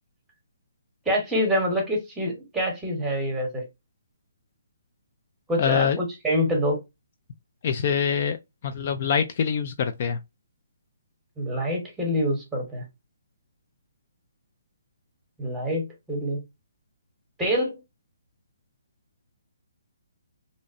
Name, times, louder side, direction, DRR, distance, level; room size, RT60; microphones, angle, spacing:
voice 1, 1.1-3.6 5.5-6.8 11.4-12.8 15.4-16.4 17.4-17.8, equal, 5° right, 1.0 m, -26 dB
voice 2, 5.6-6.0 7.6-8.4 8.6-10.2, left 7 dB, 45° left, 0.3 m, -24 dB
2.6 x 2.0 x 2.5 m
hypercardioid pair, 155°, 0 cm